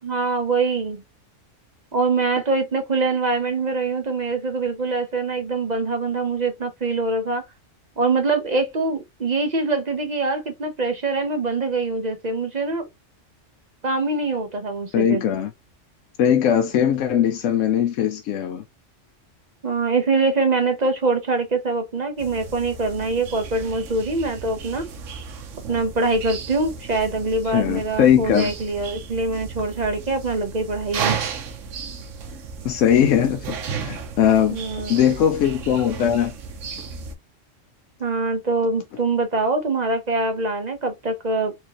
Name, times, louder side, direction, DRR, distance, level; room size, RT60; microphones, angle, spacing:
voice 1, 0.0-1.0 1.9-7.4 8.0-12.9 13.8-15.2 19.6-24.9 25.7-31.2 34.5-34.9 38.0-41.5, right 3 dB, 40° right, 0.7 m, -24 dB
voice 2, 14.9-15.5 16.2-18.6 27.5-28.5 32.6-34.6 34.9-36.3, left 9 dB, 80° left, 0.9 m, -20 dB
sound 1, 22.2-37.1, right 6 dB, 75° right, 1.1 m, -34 dB
4.5 x 2.7 x 2.9 m
omnidirectional pair, 1.3 m